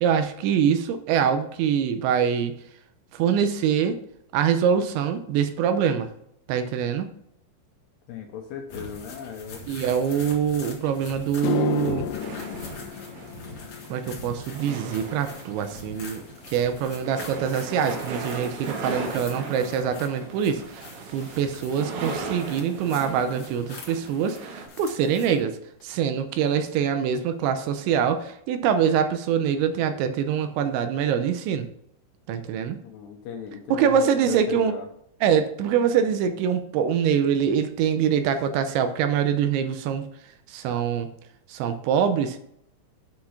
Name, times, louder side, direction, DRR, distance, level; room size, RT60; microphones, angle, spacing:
voice 1, 0.0-2.6 3.1-4.0 4.3-6.1 6.5-7.1 9.7-12.1 13.9-25.6 25.8-31.7 32.3-32.8 33.7-34.7 35.2-40.1 40.5-41.1 41.5-42.4, right 8 dB, 85° right, 8 dB, 2.9 m, -24 dB
voice 2, 8.1-9.6 32.8-34.9, left 7 dB, 75° left, 4 dB, 2.6 m, -37 dB
sound 1, 8.7-25.4, left 2 dB, 50° left, 2.1 m, -44 dB
sound 2, 11.2-19.7 20.0-20.5 21.2-21.3 24.1-24.2 25.8-25.9 26.1-26.3 26.6-27.1 27.6-27.7 28.2-28.3, left 12 dB, 90° left, 2.3 m, -36 dB
sound 3, 12.2-24.7, right 4 dB, 70° right, 3.7 m, -38 dB
8.8 x 6.0 x 5.7 m, 0.73 s
omnidirectional pair, 5.5 m